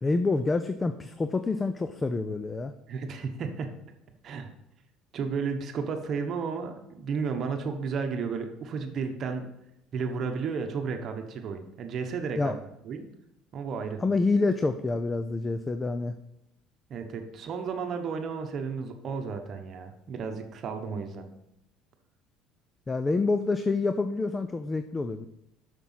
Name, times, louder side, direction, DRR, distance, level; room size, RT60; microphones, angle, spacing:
voice 1, 0.0-2.7 12.4-12.5 14.0-16.1 22.9-25.3, left 3 dB, 20° left, 9 dB, 0.5 m, -27 dB
voice 2, 2.9-3.7 4.2-4.5 5.1-9.5 9.9-12.6 12.8-13.1 13.5-14.0 16.9-21.3, right 5 dB, 45° right, 5 dB, 1.1 m, -33 dB
6.8 x 6.2 x 5.8 m, 0.84 s
cardioid pair, 115°, 0 cm